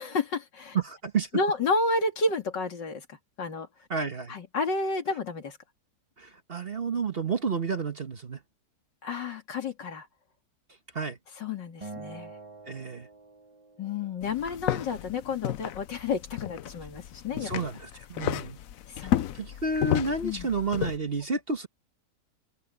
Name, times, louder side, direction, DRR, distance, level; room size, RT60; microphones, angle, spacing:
voice 1, 0.0-0.8 1.3-3.1 3.4-3.7 4.3-5.6 9.0-10.1 11.4-12.3 13.8-17.6 19.0-19.3 20.2-20.5, left 3 dB, 80° left, 3.0 m, -30 dB
voice 2, 0.7-1.3 3.9-4.4 6.2-8.4 10.9-11.2 12.7-13.1 17.3-18.6 19.0-21.7, right 4 dB, 35° right, 1.3 m, -31 dB
Acoustic guitar, 11.8-15.1, right 3 dB, 20° right, 1.2 m, -47 dB
sound 1, 14.2-21.0, left 11 dB, 65° left, 0.9 m, -32 dB
omnidirectional pair, 1.9 m